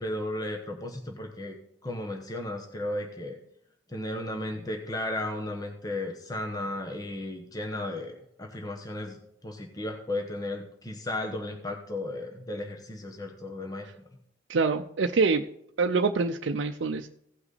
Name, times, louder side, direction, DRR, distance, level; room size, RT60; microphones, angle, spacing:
voice 1, 0.0-1.6 1.8-3.4 3.9-13.9, left 1 dB, 20° left, 2 dB, 1.1 m, -34 dB
voice 2, 14.5-15.4 15.8-17.1, right 4 dB, 75° right, 4 dB, 0.6 m, -25 dB
16.5 x 5.9 x 4.1 m, 0.74 s
head